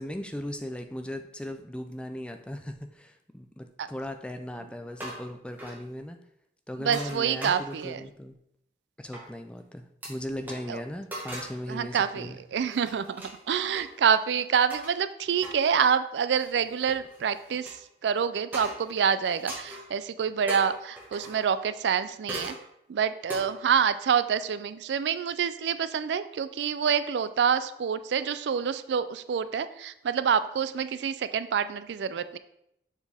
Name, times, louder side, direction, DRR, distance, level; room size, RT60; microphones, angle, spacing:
voice 1, 0.0-6.2 6.7-8.4 9.0-12.4, equal, 5° left, 6 dB, 0.4 m, -38 dB
sound 1, 4.9-5.3 5.6-5.8 6.8-8.0 9.1-9.2 10.0-10.1 10.4-10.6 11.1-11.6 12.0-12.2 12.6-13.9 14.7-14.9 15.4-15.6 16.3-17.8 18.5-18.9 19.2-19.9 20.5-21.5 22.3-22.6 23.3-23.4, equal, 10° right, 1.3 m, -39 dB
voice 2, 6.8-8.0 10.7-10.8 11.7-22.5 22.9-32.4, right 7 dB, 85° right, 13 dB, 0.4 m, -27 dB
7.1 x 4.3 x 3.4 m, 0.77 s
head